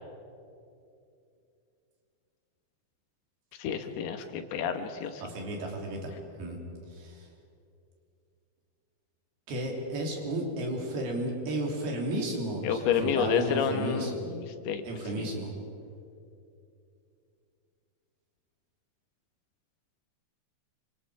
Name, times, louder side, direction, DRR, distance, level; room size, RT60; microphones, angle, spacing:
voice 1, 3.6-5.2 12.6-14.8 15.2-15.3, left 7 dB, 85° left, 7 dB, 3.3 m, -29 dB
voice 2, 5.2-6.1 6.4-6.6 6.9-7.3 9.5-14.1 14.8-15.5, right 1 dB, 75° right, 0 dB, 4.9 m, -33 dB
27.5 x 24.0 x 4.9 m, 2.6 s
omnidirectional pair, 4.5 m